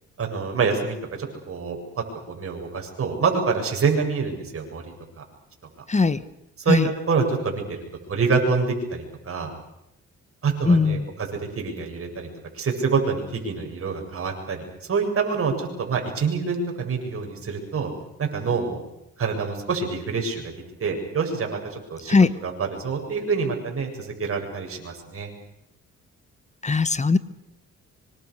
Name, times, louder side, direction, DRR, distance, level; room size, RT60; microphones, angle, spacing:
voice 1, 0.2-4.9 6.6-7.8 8.1-9.5 10.4-11.3 11.5-12.3 12.5-17.9 18.2-18.8 19.2-20.5 20.8-22.2 22.4-25.3, right 5 dB, 45° right, 2 dB, 8.0 m, -26 dB
voice 2, 5.9-6.2 6.7-6.9 10.6-11.1 22.1-22.4 26.6-27.2, left 4 dB, 25° left, 16 dB, 1.3 m, -19 dB
25.5 x 25.0 x 6.6 m, 0.83 s
cardioid pair, 90°, 30 cm